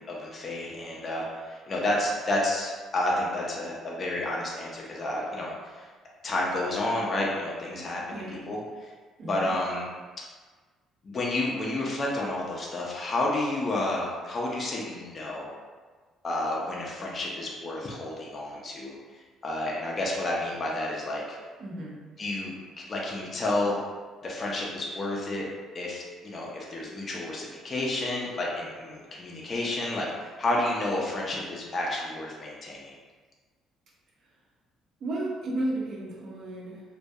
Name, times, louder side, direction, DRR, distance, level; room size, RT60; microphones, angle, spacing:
voice 1, 0.1-5.9 6.2-8.9 9.3-9.9 11.0-15.5 16.2-21.4 22.2-23.8 24.2-25.5 25.7-32.9, left 1 dB, 25° left, -3 dB, 0.4 m, -30 dB
voice 2, 8.1-8.5 9.2-9.5 21.6-21.9 35.0-36.8, right 1 dB, 45° right, -3 dB, 0.5 m, -33 dB
2.2 x 2.2 x 2.6 m, 1.4 s
cardioid pair, 160°, 0 cm